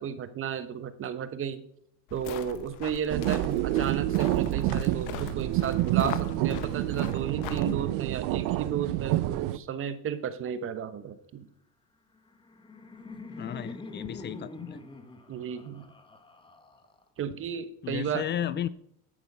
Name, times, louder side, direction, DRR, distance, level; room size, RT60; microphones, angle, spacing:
voice 1, 0.0-1.6 2.1-11.5 15.3-15.8 17.2-18.2, right 8 dB, 45° right, 12 dB, 1.2 m, -33 dB
sound 1, 2.1-7.7, left 11 dB, 85° left, 1.0 m, -40 dB
sound 2, 3.1-9.6, right 15 dB, 85° right, 0.6 m, -28 dB
Laughter, 12.2-17.2, left 2 dB, 15° left, 1.3 m, -44 dB
voice 2, 13.4-14.8 17.8-18.7, left 11 dB, 35° left, 18 dB, 0.4 m, -34 dB
11.0 x 8.8 x 5.6 m, 0.72 s
cardioid pair, 130°, 31 cm